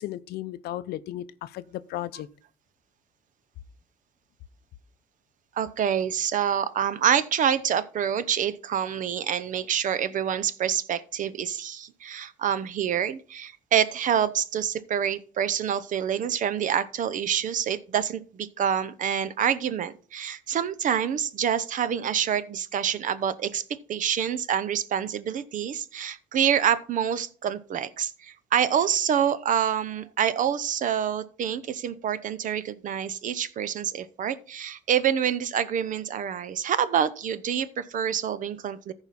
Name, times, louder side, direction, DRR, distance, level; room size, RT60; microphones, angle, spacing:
voice 1, 0.0-2.3, left 14 dB, 70° left, 0.6 m, -35 dB
voice 2, 5.6-23.6 23.9-38.9, right 9 dB, 50° right, 0.7 m, -27 dB
14.5 x 4.9 x 4.1 m
cardioid pair, 110°, 17 cm